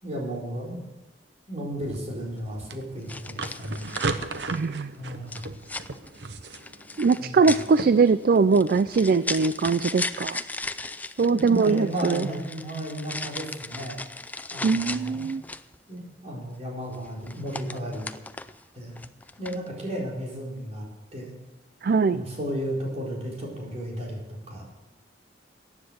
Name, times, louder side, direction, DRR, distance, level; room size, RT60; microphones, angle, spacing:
voice 1, 0.0-0.8 1.5-3.9 5.0-5.4 7.2-7.5 11.2-15.3 15.9-18.1 18.7-18.9 19.4-20.9 21.1-21.3 22.1-24.2 24.5-24.6, right 1 dB, 40° right, -3 dB, 4.4 m, -34 dB
sound 1, 1.8-2.0 3.1-4.7 5.3-15.8 16.9-18.6 18.9-19.7, left 3 dB, 10° left, 0.4 m, -37 dB
sound 2, 1.8-9.7, right 3 dB, 70° right, 0.9 m, -37 dB
voice 2, 4.5-4.9 7.0-10.4 11.2-12.3 14.6-15.4 21.8-22.2, right 4 dB, 55° right, 14 dB, 0.4 m, -21 dB
15.0 x 9.8 x 6.5 m, 1.1 s
head